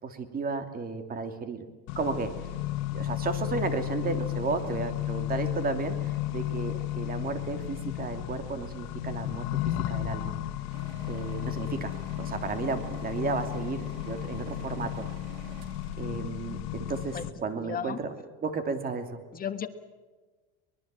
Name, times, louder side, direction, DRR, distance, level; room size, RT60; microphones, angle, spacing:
voice 1, 0.0-1.6 2.0-2.3 2.9-10.4 11.1-15.1 16.0-18.1 18.4-19.2, right 4 dB, 30° right, 8 dB, 2.8 m, -33 dB
Accelerating revving vroom, 1.9-17.3, left 14 dB, 65° left, 1.5 m, -34 dB
sound 1, 10.7-17.6, right 9 dB, 65° right, 2.3 m, -50 dB
voice 2, 17.6-18.0 19.3-19.7, left 8 dB, 30° left, 9 dB, 1.5 m, -34 dB
23.5 x 21.5 x 7.7 m, 1.3 s
supercardioid pair, 130°, 30 cm